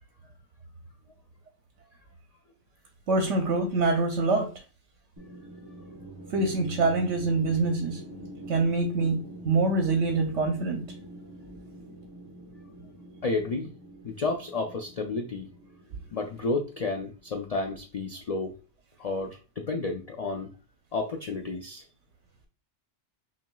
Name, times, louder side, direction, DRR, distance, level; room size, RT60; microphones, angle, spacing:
voice 1, 3.1-4.5 6.3-8.0 8.5-9.2 9.4-10.8, right 3 dB, 70° right, 3 dB, 1.0 m, -25 dB
sound 1, 5.2-17.3, right 1 dB, 25° right, 0.9 m, -45 dB
voice 2, 13.2-13.7 14.0-15.5 16.1-18.5 19.0-20.5 20.9-21.8, left 3 dB, 70° left, 3 dB, 0.3 m, -31 dB
5.8 x 2.8 x 2.2 m, 0.35 s
omnidirectional pair, 1.3 m